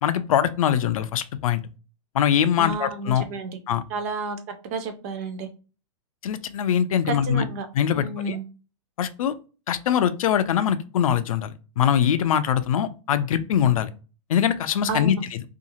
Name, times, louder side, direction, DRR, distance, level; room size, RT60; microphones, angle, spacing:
voice 1, 0.0-1.6 2.1-3.2 3.7-3.8 6.2-7.5 7.8-8.4 9.0-9.3 9.7-13.9 14.3-15.2, left 9 dB, 80° left, 12 dB, 0.4 m, -22 dB
voice 2, 2.6-3.6 3.9-4.4 4.6-5.5 7.0-7.7 7.9-8.4 14.9-15.2, right 3 dB, 30° right, 7 dB, 0.4 m, -31 dB
2.7 x 2.4 x 2.8 m, 0.34 s
supercardioid pair, 165°, 17 cm